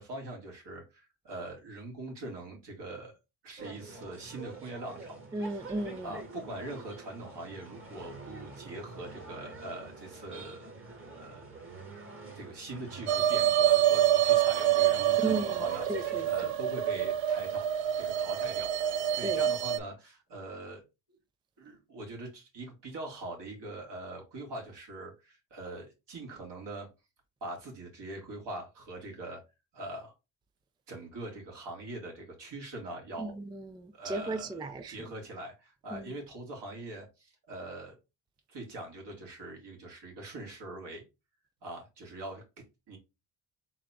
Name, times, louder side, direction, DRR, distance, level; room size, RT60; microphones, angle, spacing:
voice 1, 0.0-3.1 3.4-5.2 6.0-11.5 12.3-17.6 18.0-20.8 21.6-26.9 27.4-29.4 29.7-30.1 30.9-33.4 33.9-38.0 38.5-41.0 41.6-42.4 42.9-43.0, right 2 dB, 60° right, 2.2 m, -43 dB
sound 1, 3.6-16.4, right 3 dB, 25° right, 1.4 m, -47 dB
voice 2, 5.3-6.1 15.2-15.6 15.9-16.3 19.2-19.4 33.2-35.1 35.9-36.0, right 2 dB, 10° right, 0.3 m, -35 dB
sound 2, 13.1-19.8, right 11 dB, 75° right, 0.5 m, -26 dB
3.9 x 2.9 x 3.5 m
cardioid pair, 90°, 46 cm